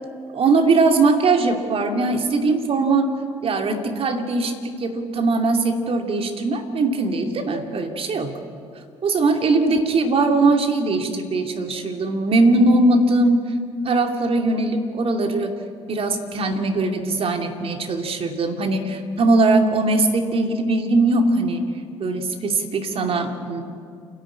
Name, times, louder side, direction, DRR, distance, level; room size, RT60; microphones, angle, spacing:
voice 1, 0.3-3.1 3.4-8.4 9.0-13.5 13.8-15.5 15.9-21.6 22.0-23.6, right 3 dB, 40° right, 4 dB, 2.6 m, -20 dB
29.5 x 11.5 x 8.5 m, 2.3 s
figure-of-eight pair, 50°, 14 cm